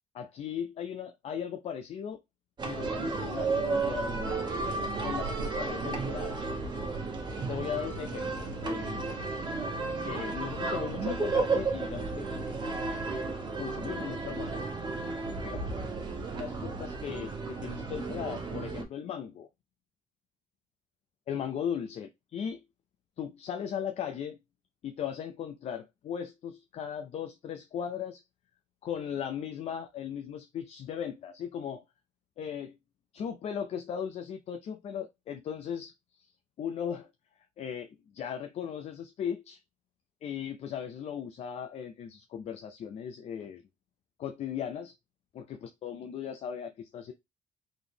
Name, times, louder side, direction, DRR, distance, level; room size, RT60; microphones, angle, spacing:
voice 1, 0.1-2.2 2.7-4.5 5.0-6.4 7.5-9.1 10.0-12.7 13.6-14.6 15.4-15.6 16.4-19.5 21.3-22.6 23.2-24.4 24.8-28.2 28.8-31.8 32.4-32.8 33.1-35.9 36.6-37.1 37.6-39.6 40.2-43.6 44.2-44.9 45.3-47.1, left 8 dB, 50° left, 0.5 m, -37 dB
sound 1, 2.6-18.8, right 3 dB, 30° right, 1.2 m, -33 dB
4.0 x 3.5 x 2.9 m
cardioid pair, 130°, 14 cm